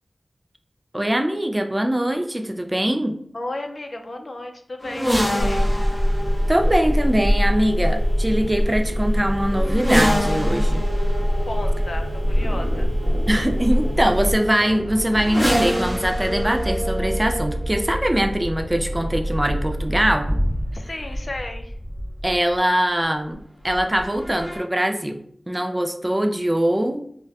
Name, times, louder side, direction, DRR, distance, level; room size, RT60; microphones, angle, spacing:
voice 1, 0.9-3.2 6.5-10.9 13.3-20.4 22.2-23.4 23.6-25.2 25.5-27.0, right 1 dB, 20° right, 5 dB, 0.3 m, -22 dB
voice 2, 3.3-5.8 11.4-12.9 20.7-21.8, left 2 dB, 60° left, 4 dB, 0.4 m, -34 dB
sound 1, 4.8-22.6 23.6-24.6, equal, 10° left, 0.9 m, -28 dB
Telephone, 5.4-14.4, equal, 35° right, 0.9 m, -22 dB
sound 2, 11.4-20.2, right 1 dB, 80° right, 0.6 m, -30 dB
2.5 x 2.1 x 3.9 m, 0.65 s
wide cardioid pair, 80°, 0 cm